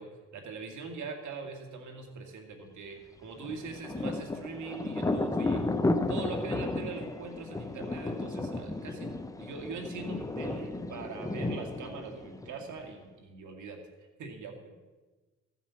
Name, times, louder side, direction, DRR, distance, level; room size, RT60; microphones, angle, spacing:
voice 1, 0.0-5.6 6.1-13.8 14.2-14.7, right 4 dB, 75° right, 3 dB, 2.5 m, -42 dB
Thunder, 3.4-12.9, left 2 dB, 10° left, 0.8 m, -33 dB
14.5 x 7.5 x 7.1 m, 1.2 s
cardioid pair, 90°, 30 cm